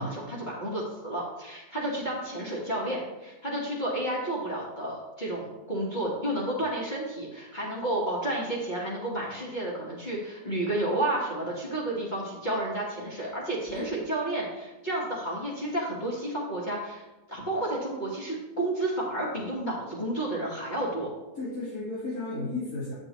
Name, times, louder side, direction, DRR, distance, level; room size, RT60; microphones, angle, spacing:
voice 1, 0.0-17.0 17.3-21.1, right 1 dB, 30° left, -5 dB, 1.4 m, -31 dB
voice 2, 21.3-22.9, left 2 dB, 80° left, -12 dB, 3.7 m, -33 dB
8.9 x 6.7 x 3.0 m, 1.1 s
omnidirectional pair, 1.6 m